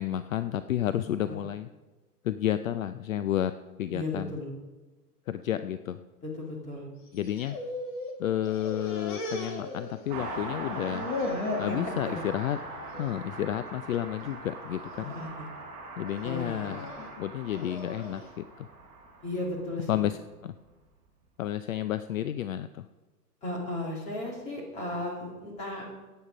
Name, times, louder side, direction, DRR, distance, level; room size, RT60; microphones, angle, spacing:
voice 1, 0.0-1.7 2.2-3.5 3.8-4.3 5.3-6.0 7.1-7.6 8.2-11.1 11.6-12.6 13.0-15.1 16.0-16.9 17.2-18.7 19.9-20.1 20.4-20.5 21.4-22.8, left 11 dB, 60° left, 12 dB, 0.5 m, -31 dB
voice 2, 3.9-4.5 6.2-6.9 11.6-11.8 12.0-12.2 15.1-15.5 16.2-16.9 19.2-19.9 23.4-25.8, left 1 dB, 15° left, -2 dB, 2.3 m, -35 dB
sound 1, 7.1-8.2 8.4-10.3 10.6-11.8 12.2-12.6 12.9-13.1 13.9-14.3 14.9-15.3 16.1-18.3, left 2 dB, 30° left, 1.6 m, -37 dB
Car passing by, 10.1-20.1 20.3-20.4, right 2 dB, 15° right, 4.4 m, -41 dB
15.0 x 9.2 x 5.1 m, 1.2 s
hypercardioid pair, 175°, 47 cm